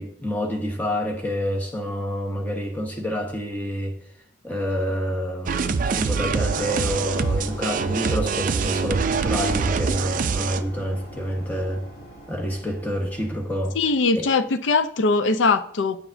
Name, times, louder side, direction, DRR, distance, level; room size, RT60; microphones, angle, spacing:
voice 1, 0.0-4.0 4.4-11.8 12.3-13.8, equal, 10° left, 1.1 m, -28 dB
sound 1, 5.5-10.6, right 5 dB, 45° right, 0.3 m, -24 dB
sound 2, 6.4-14.0, right 1 dB, 50° left, 2.4 m, -40 dB
voice 2, 13.7-16.0, left 3 dB, 75° left, 0.5 m, -21 dB
9.9 x 6.9 x 2.6 m
head